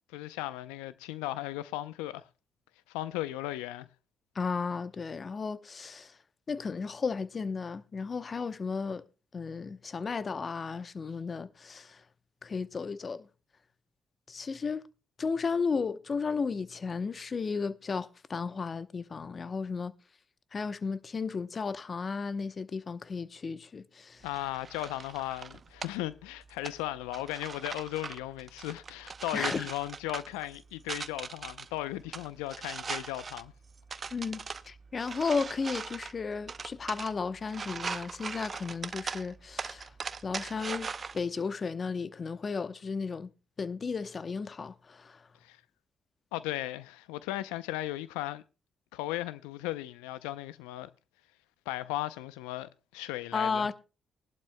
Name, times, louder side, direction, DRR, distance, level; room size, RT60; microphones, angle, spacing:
voice 1, 0.1-2.3 2.9-3.9 24.2-33.5 45.4-45.6 46.3-48.4 48.9-50.9 51.7-53.7, left 15 dB, 90° left, 0.5 m, -36 dB
voice 2, 4.3-6.1 6.5-9.0 9.3-12.0 12.4-13.3 14.3-14.9 15.2-19.9 20.5-24.2 29.3-29.7 34.1-34.4 34.7-39.9 40.2-43.3 43.6-45.2 53.3-53.7, left 5 dB, 45° left, 0.8 m, -34 dB
sound 1, 24.2-41.2, right 5 dB, 45° right, 0.7 m, -41 dB
20.5 x 11.5 x 2.2 m
hypercardioid pair, 50°, 0 cm